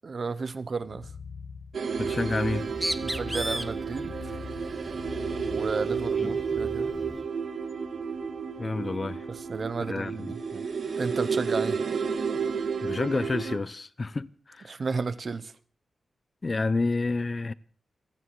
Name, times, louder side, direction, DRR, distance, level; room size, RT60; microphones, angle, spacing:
voice 1, 0.0-1.1 3.0-4.3 5.5-6.9 9.3-10.6 11.0-11.8 14.7-15.5, right 4 dB, 50° right, 1.0 m, -33 dB
sound 1, 0.8-6.1, left 5 dB, 70° left, 1.2 m, -43 dB
sound 2, 1.7-13.6, right 5 dB, 65° right, 2.2 m, -31 dB
voice 2, 2.0-2.7 6.2-6.3 8.6-9.3 9.9-10.3 12.8-14.8 16.4-17.5, left 3 dB, 35° left, 0.7 m, -29 dB
Bird, 2.4-7.3, right 1 dB, 10° right, 0.7 m, -37 dB
29.5 x 10.0 x 4.7 m
wide cardioid pair, 110°, 0 cm